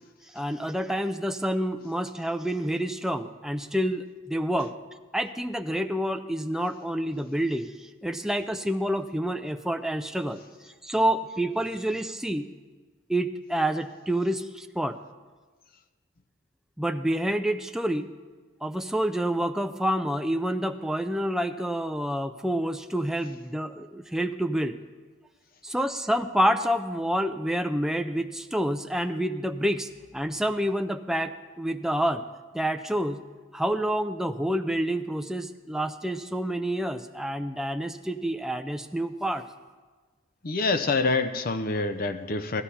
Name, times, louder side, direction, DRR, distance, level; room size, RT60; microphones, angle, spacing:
voice 1, 0.3-4.7 5.1-10.4 10.8-12.5 13.1-15.0 16.8-18.1 18.6-24.8 25.6-31.3 31.6-32.2 32.5-33.2 33.5-39.4, right 1 dB, ahead, 7 dB, 0.4 m, -28 dB
voice 2, 40.4-42.6, left 3 dB, 45° left, 9 dB, 0.6 m, -26 dB
16.0 x 13.0 x 4.2 m, 1.4 s
head